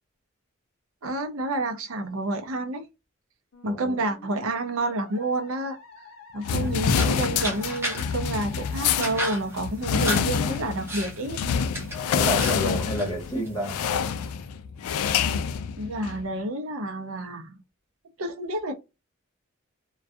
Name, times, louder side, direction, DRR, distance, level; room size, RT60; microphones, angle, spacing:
voice 1, 1.0-2.8 3.6-5.8 6.3-11.4 15.8-17.6 18.2-18.7, right 2 dB, 75° right, 0.6 m, -29 dB
Musical instrument, 3.5-10.4, left 4 dB, 70° left, 0.7 m, -49 dB
voice 2, 3.7-4.0 12.1-13.8, equal, 15° left, 0.9 m, -29 dB
sound 1, 6.4-16.3, left 7 dB, 85° left, 0.3 m, -27 dB
sound 2, 6.5-14.3, right 1 dB, 10° right, 0.6 m, -36 dB
2.3 x 2.2 x 2.6 m
head